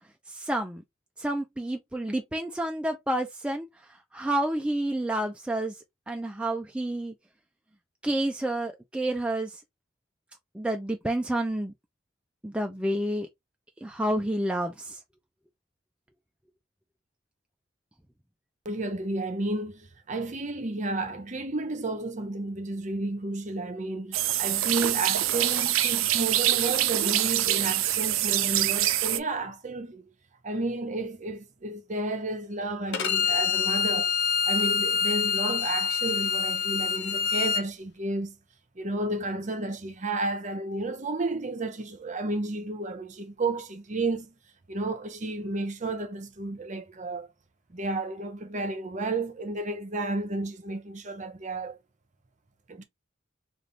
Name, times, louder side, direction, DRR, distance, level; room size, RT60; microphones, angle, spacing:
voice 1, 0.3-0.8 1.2-5.8 6.1-7.1 8.0-9.6 10.5-11.7 12.4-13.3 13.8-15.0, right 1 dB, 5° right, 0.4 m, -29 dB
voice 2, 18.6-30.0 30.4-34.1 34.4-38.4 38.8-44.3 44.7-47.3 47.7-51.8 52.7-52.8, right 2 dB, 35° right, 0.7 m, -32 dB
sound 1, 24.1-29.2, right 13 dB, 90° right, 0.4 m, -25 dB
Bowed string instrument, 32.9-37.6, left 7 dB, 55° left, 0.5 m, -26 dB
3.3 x 2.5 x 4.0 m
head